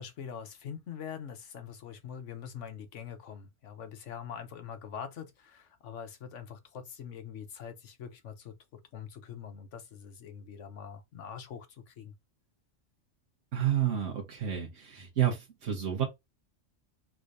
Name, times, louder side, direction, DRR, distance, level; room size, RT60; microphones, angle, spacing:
voice 1, 0.0-12.1, left 7 dB, 75° left, 1.2 m, -44 dB
voice 2, 13.5-16.0, right 10 dB, 80° right, 1.5 m, -30 dB
4.9 x 3.8 x 2.6 m
omnidirectional pair, 1.3 m